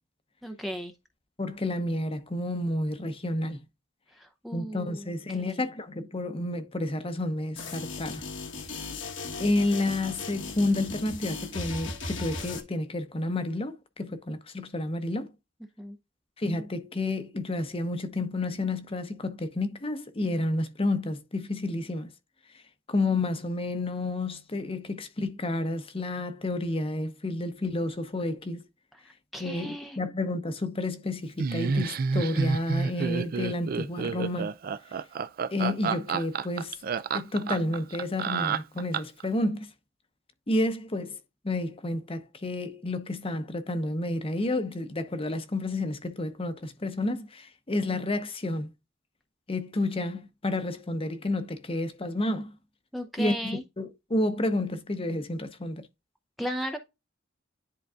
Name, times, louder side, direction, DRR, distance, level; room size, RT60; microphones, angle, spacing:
voice 1, 0.4-0.9 4.1-5.7 15.8-16.0 29.3-30.0 52.9-53.6 56.4-56.8, equal, ahead, 0.6 m, -36 dB
voice 2, 1.4-3.6 4.5-8.2 9.4-15.3 16.4-22.1 22.9-28.7 29.4-34.5 35.5-36.8 37.1-39.7 40.5-41.2 41.4-48.7 49.5-52.6 53.2-55.9, left 2 dB, 30° left, 0.8 m, -30 dB
sound 1, 7.6-12.6, left 3 dB, 70° left, 1.3 m, -37 dB
Laughter, 31.4-39.3, right 5 dB, 50° right, 0.4 m, -29 dB
10.5 x 3.9 x 2.4 m
head